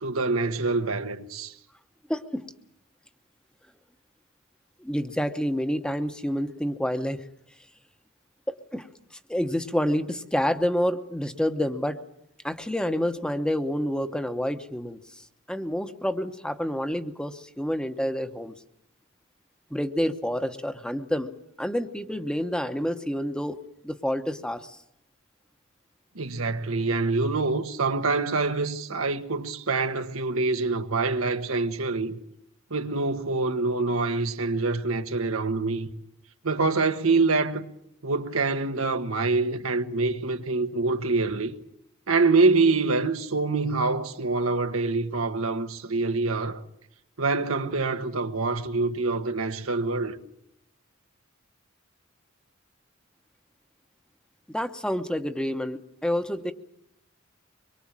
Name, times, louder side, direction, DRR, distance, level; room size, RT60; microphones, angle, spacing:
voice 1, 0.0-1.5 26.1-32.2 32.7-35.9 36.4-37.7 38.0-41.5 42.1-46.6 47.2-50.2, right 3 dB, 90° right, 1.5 m, -25 dB
voice 2, 2.1-2.5 4.8-7.2 8.5-8.9 9.3-12.0 12.4-15.2 15.5-18.5 19.7-21.3 21.6-23.6 23.8-24.8 54.5-56.5, equal, 5° left, 1.0 m, -28 dB
24.5 x 23.0 x 7.5 m
head